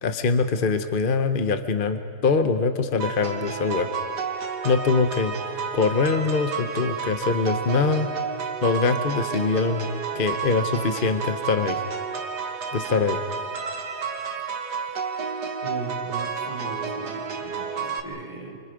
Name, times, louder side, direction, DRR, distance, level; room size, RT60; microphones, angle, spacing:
voice 1, 0.0-3.9 4.6-5.3 5.7-8.1 8.6-9.9 10.1-11.8 12.7-13.2, left 4 dB, 40° left, 8 dB, 0.9 m, -23 dB
sound 1, 3.0-18.0, right 5 dB, 65° right, 1.9 m, -31 dB
voice 2, 15.6-18.6, right 3 dB, 60° left, 0 dB, 4.5 m, -37 dB
29.5 x 25.5 x 5.1 m, 2.3 s
omnidirectional pair, 1.9 m